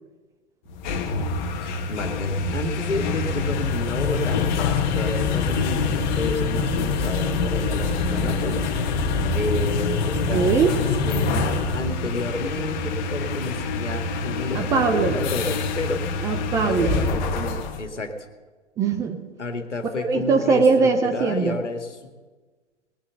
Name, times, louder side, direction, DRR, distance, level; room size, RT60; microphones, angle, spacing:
sound 1, 0.7-17.8, left 4 dB, 40° left, 1.5 m, -25 dB
voice 1, 1.6-4.4 4.9-8.6 9.3-16.3 16.6-17.0 17.3-18.3 19.4-20.6 21.1-22.0, left 2 dB, 80° left, 6 dB, 1.9 m, -30 dB
voice 2, 10.3-10.8 14.5-15.2 16.2-17.0 18.8-19.2 20.0-21.6, right 5 dB, 10° right, 6 dB, 0.4 m, -21 dB
20.0 x 8.7 x 6.7 m, 1.4 s
figure-of-eight pair, 115°, 35 cm